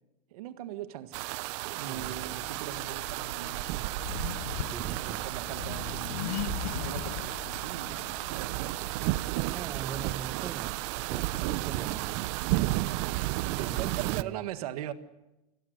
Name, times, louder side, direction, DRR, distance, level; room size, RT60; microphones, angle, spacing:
voice 1, 0.3-1.2 1.7-3.7 4.9-8.0 8.3-8.7 13.6-14.9, right 12 dB, 75° right, 1.8 m, -40 dB
sound 1, 1.1-14.2, right 19 dB, 50° right, 0.7 m, -33 dB
voice 2, 1.9-2.3 4.6-5.2 9.5-12.2 13.6-14.4, right 7 dB, 15° right, 0.8 m, -41 dB
Accelerating revving vroom, 2.0-9.3, left 11 dB, 75° left, 1.6 m, -40 dB
Bell, 6.6-10.2, left 8 dB, 55° left, 3.4 m, -59 dB
28.0 x 19.5 x 6.6 m
supercardioid pair, 160°, 19 cm